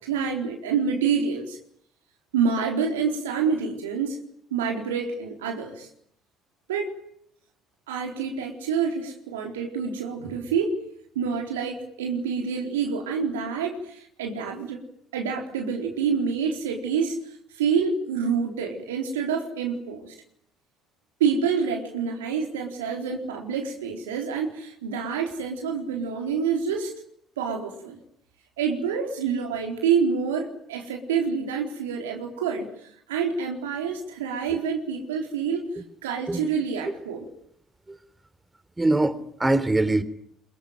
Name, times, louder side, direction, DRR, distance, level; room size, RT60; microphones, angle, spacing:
voice 1, 0.0-1.6 2.3-4.2 4.5-5.9 6.7-6.9 7.9-10.8 11.1-14.8 15.1-17.2 17.5-20.1 21.2-26.9 27.4-28.0 28.6-35.7 36.0-37.2, right 6 dB, 85° right, 4.1 m, -27 dB
voice 2, 38.8-40.0, right 2 dB, 15° right, 3.5 m, -23 dB
26.5 x 22.5 x 9.3 m
hypercardioid pair, 60°, 0 cm